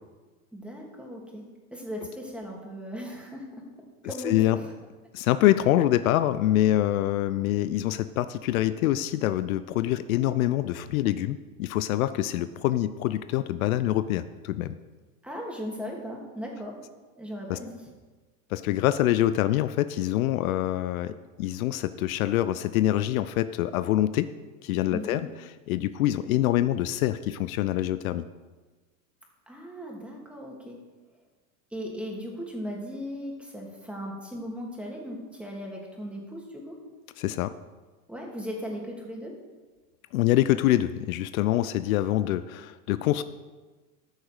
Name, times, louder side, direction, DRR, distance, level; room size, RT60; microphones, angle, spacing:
voice 1, 0.5-4.7 15.2-16.8 17.2-17.8 24.9-25.2 29.5-30.8 31.7-36.8 38.1-39.3, equal, 5° right, -1 dB, 2.9 m, -37 dB
voice 2, 4.2-4.6 5.1-14.7 17.5-17.6 18.5-24.3 24.6-25.3 25.7-28.2 37.2-37.5 40.1-43.2, left 14 dB, 75° left, 13 dB, 0.6 m, -25 dB
14.0 x 6.5 x 4.7 m, 1.3 s
hypercardioid pair, 90°, 42 cm